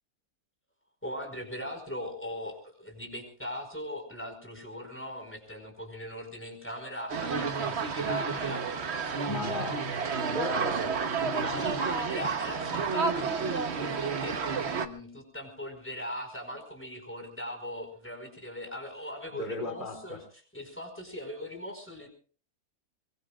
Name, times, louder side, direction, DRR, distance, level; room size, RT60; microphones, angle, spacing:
voice 1, 1.0-8.8 10.8-10.9 11.3-20.2 20.5-22.1, left 1 dB, 10° left, 4 dB, 4.9 m, -40 dB
sound 1, 7.1-14.9, right 5 dB, 50° right, 1.3 m, -30 dB
voice 2, 9.2-9.8 10.3-10.9 19.3-20.2, left 2 dB, 35° left, 5 dB, 3.2 m, -35 dB
24.5 x 23.0 x 2.4 m, 0.40 s
omnidirectional pair, 1.6 m